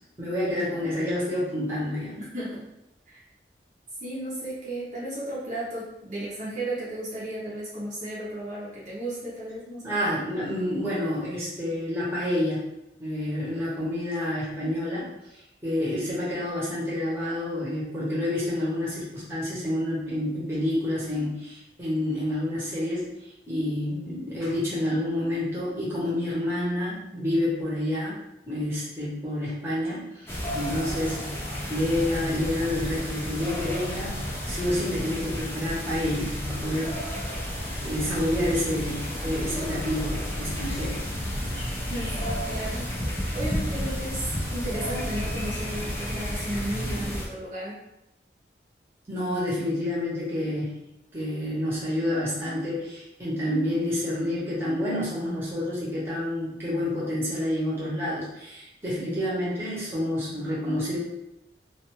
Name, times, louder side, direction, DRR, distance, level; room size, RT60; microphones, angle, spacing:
voice 1, 0.2-2.2 9.8-12.6 13.0-15.1 15.6-23.1 23.5-28.2 28.5-31.2 31.7-34.2 34.4-36.9 37.8-41.0 49.1-50.8 51.1-61.0, left 1 dB, 15° right, -8 dB, 0.8 m, -28 dB
voice 2, 2.2-2.7 3.1-3.2 4.0-10.0 41.8-42.9 43.3-47.8, right 1 dB, 45° right, -7 dB, 0.7 m, -34 dB
sound 1, 30.3-47.3, equal, 15° left, 0.4 m, -31 dB
2.4 x 2.2 x 2.9 m, 0.87 s
head